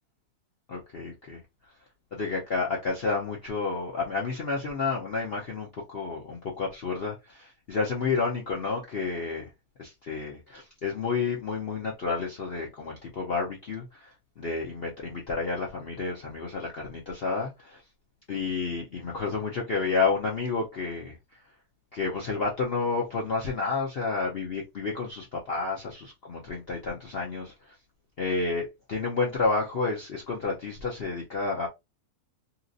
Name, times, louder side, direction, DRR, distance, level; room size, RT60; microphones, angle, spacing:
voice 1, 0.7-1.4 2.1-9.5 9.8-17.8 18.3-21.2 21.9-27.5 28.2-31.7, left 4 dB, 70° left, 0.5 m, -30 dB
2.9 x 2.8 x 2.5 m
omnidirectional pair, 2.0 m